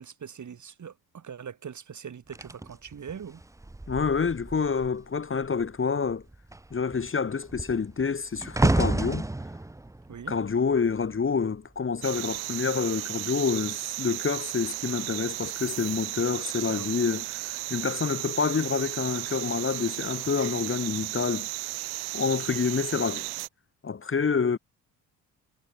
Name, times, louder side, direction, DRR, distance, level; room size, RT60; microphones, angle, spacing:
voice 1, 0.0-3.4 10.1-10.4 16.7-17.0, right 7 dB, 40° right, 4.2 m, -42 dB
sound 1, 2.3-5.1 5.4-5.7 6.0-11.4 12.1-12.4, right 2 dB, 5° right, 1.2 m, -30 dB
voice 2, 3.9-6.2 6.7-9.3 10.3-21.5 22.1-23.3 23.8-24.6, left 5 dB, 25° left, 2.3 m, -28 dB
sound 2, 12.0-23.5, right 23 dB, 55° right, 0.8 m, -35 dB
figure-of-eight pair, 50°, 47 cm